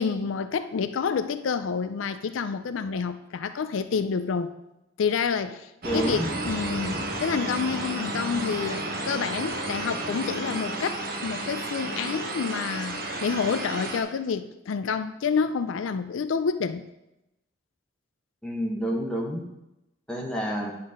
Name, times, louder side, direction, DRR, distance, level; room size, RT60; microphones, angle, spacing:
voice 1, 0.0-4.5 5.0-16.9, left 5 dB, 85° left, 0.4 m, -28 dB
voice 2, 5.8-6.3 18.4-19.4 20.1-20.7, equal, 5° left, 1.2 m, -29 dB
sound 1, 5.8-14.0, right 2 dB, 50° right, 1.0 m, -32 dB
9.5 x 4.1 x 5.0 m
head